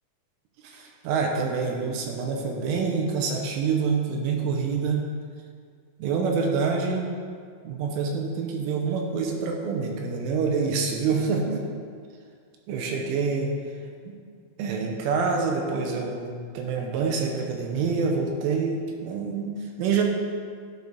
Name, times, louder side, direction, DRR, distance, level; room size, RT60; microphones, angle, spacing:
voice 1, 0.6-5.0 6.0-7.1 7.6-11.6 12.7-13.5 14.1-14.2 14.6-19.5 19.8-20.0, right 5 dB, 85° right, 1 dB, 3.2 m, -26 dB
11.5 x 4.9 x 4.1 m, 2.1 s
omnidirectional pair, 5.9 m